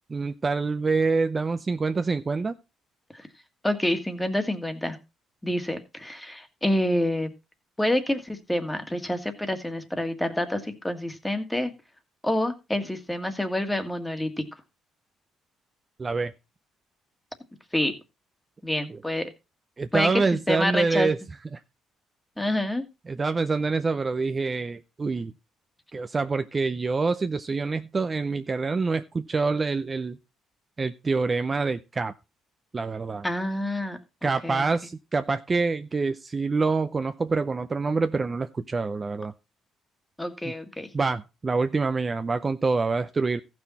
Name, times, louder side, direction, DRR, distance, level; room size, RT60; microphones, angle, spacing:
voice 1, 0.1-2.6 16.0-16.3 18.9-19.0 19.8-21.2 21.5-21.6 23.1-25.3 25.9-30.2 30.8-32.1 32.7-33.3 34.2-39.3 40.5-40.6 40.9-43.4, right 4 dB, 30° right, 10 dB, 0.6 m, -26 dB
voice 2, 3.6-5.0 5.4-7.3 7.8-11.7 12.2-14.4 17.7-17.9 18.6-19.3 19.9-21.1 22.4-22.8 33.2-34.6 40.2-40.9, left 1 dB, 10° left, 8 dB, 1.7 m, -27 dB
14.5 x 6.2 x 4.2 m, 0.28 s
cardioid pair, 100°, 0 cm